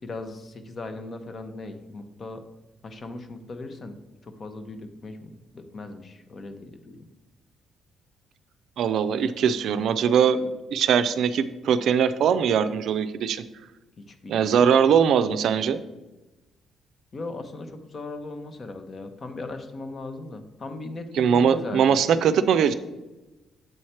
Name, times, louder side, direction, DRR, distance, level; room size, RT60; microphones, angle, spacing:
voice 1, 0.0-2.4 2.8-7.1 14.0-14.7 17.1-22.0, left 2 dB, 45° left, 7 dB, 0.8 m, -38 dB
voice 2, 8.8-13.4 14.3-15.8 21.2-22.7, right 7 dB, 75° right, 11 dB, 0.4 m, -21 dB
7.7 x 3.2 x 4.3 m, 1.1 s
cardioid pair, 90°, 0 cm